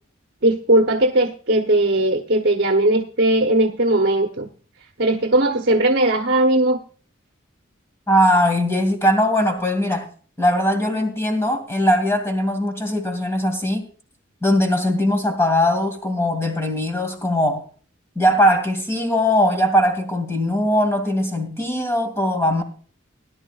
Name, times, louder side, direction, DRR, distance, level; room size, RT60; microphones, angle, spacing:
voice 1, 0.4-4.5 5.0-6.8, right 1 dB, 55° right, 1.0 m, -18 dB
voice 2, 8.1-10.1 10.4-13.9 14.4-17.6 18.2-22.6, equal, 15° left, 2.3 m, -20 dB
18.0 x 11.0 x 2.4 m
head